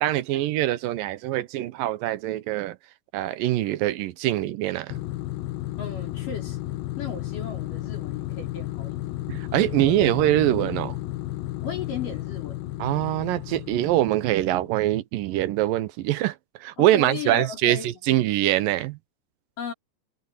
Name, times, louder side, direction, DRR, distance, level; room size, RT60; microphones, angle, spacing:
voice 1, 0.0-2.8 3.1-5.0 9.3-11.0 12.8-16.4 16.6-19.0, right 14 dB, 80° right, 2.5 m, -24 dB
sound 1, 4.9-14.7, left 16 dB, 90° left, 2.7 m, -33 dB
voice 2, 5.8-9.2 9.8-10.1 11.6-12.7 16.8-18.0 19.6-19.7, left 6 dB, 65° left, 5.3 m, -36 dB
omnidirectional pair, 4.1 m